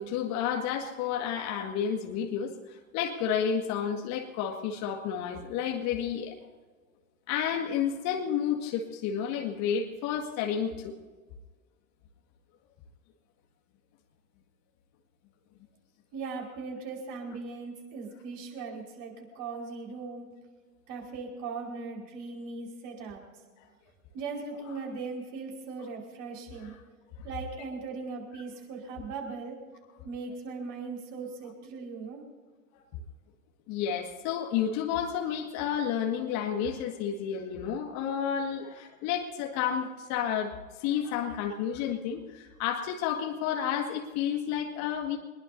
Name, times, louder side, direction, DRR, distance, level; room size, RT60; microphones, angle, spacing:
voice 1, 0.0-6.4 7.3-10.9 33.7-45.2, left 8 dB, 40° left, 2 dB, 1.9 m, -31 dB
voice 2, 16.1-20.3 20.9-23.2 24.1-26.7 27.2-29.6 30.0-32.2, right 4 dB, 40° right, 0 dB, 5.0 m, -39 dB
24.0 x 21.0 x 2.7 m, 1.4 s
figure-of-eight pair, 95°, 44 cm